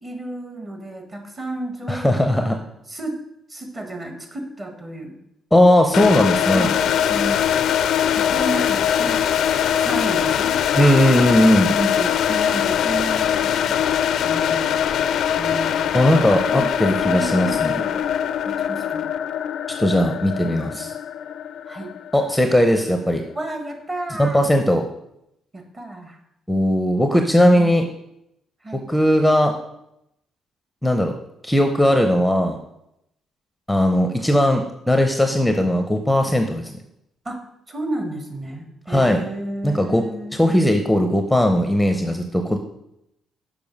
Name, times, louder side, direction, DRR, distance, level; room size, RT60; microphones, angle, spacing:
voice 1, 0.0-2.5 2.9-3.2 3.5-5.2 6.5-7.7 8.1-9.3 9.8-10.7 11.6-14.0 14.2-14.8 15.3-15.9 16.5-16.7 17.0-18.1 18.4-19.1 21.7-21.9 23.3-24.4 25.5-26.2 27.4-27.9 28.6-28.8 37.2-37.4 37.7-40.4, right 1 dB, 30° right, 5 dB, 1.6 m, -32 dB
voice 2, 1.9-2.6 5.5-6.7 10.7-11.7 15.9-17.7 19.8-20.9 22.1-23.2 24.2-24.8 26.5-27.8 28.7-29.5 30.8-31.1 31.4-32.6 33.7-36.7 38.9-39.2 39.6-40.0 40.3-42.6, left 1 dB, 5° left, 6 dB, 0.6 m, -18 dB
sound 1, 5.9-22.8, left 9 dB, 75° left, 0.4 m, -22 dB
6.9 x 5.2 x 5.4 m, 0.82 s
cardioid pair, 90°, 0 cm